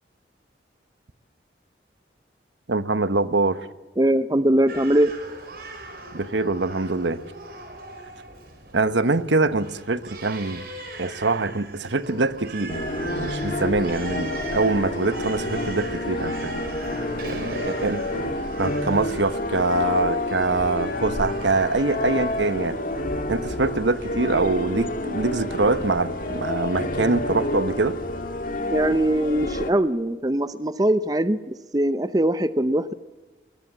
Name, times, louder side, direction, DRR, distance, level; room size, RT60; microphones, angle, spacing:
voice 1, 2.7-3.6 6.1-7.2 8.7-10.6 11.0-16.6 17.2-22.8 23.3-28.0, right 3 dB, 75° right, 13 dB, 1.1 m, -24 dB
voice 2, 4.0-5.1 28.7-32.9, right 1 dB, 20° right, 13 dB, 0.6 m, -21 dB
Crying sobbing, 4.7-23.5, right 2 dB, 55° right, 4.9 m, -40 dB
sound 1, 12.7-29.7, left 1 dB, 45° left, 2.3 m, -29 dB
21.5 x 20.0 x 8.4 m, 1.2 s
head